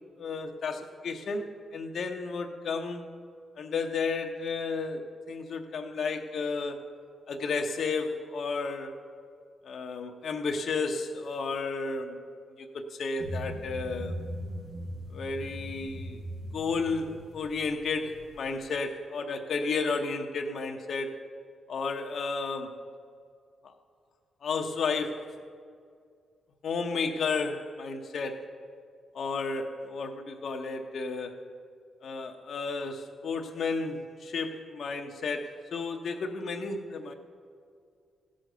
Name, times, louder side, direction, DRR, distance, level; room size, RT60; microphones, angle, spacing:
voice 1, 0.2-3.0 3.6-6.8 7.3-8.9 9.6-12.2 12.6-14.1 15.1-16.2 16.5-21.2 21.7-22.7 24.4-25.3 26.6-28.5 29.1-31.5 32.0-37.1, left 4 dB, 65° left, 4 dB, 0.9 m, -32 dB
sound 1, 13.2-18.7, equal, 80° right, 3.7 m, -39 dB
15.0 x 6.4 x 6.7 m, 2.2 s
supercardioid pair, 50°, 0 cm